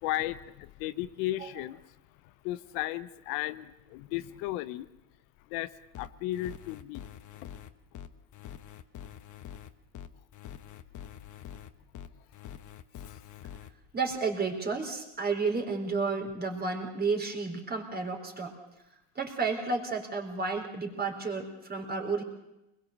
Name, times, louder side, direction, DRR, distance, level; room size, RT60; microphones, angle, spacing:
voice 1, 0.0-1.8 2.2-4.9 5.5-5.7 6.0-7.1 13.0-13.2, left 15 dB, 80° left, 13 dB, 1.1 m, -35 dB
sound 1, 5.9-13.7, left 10 dB, 40° left, 1.3 m, -45 dB
voice 2, 13.9-18.5 19.2-22.2, right 4 dB, 20° right, 3 dB, 4.1 m, -31 dB
24.0 x 21.5 x 6.7 m, 0.94 s
supercardioid pair, 125°, 45 cm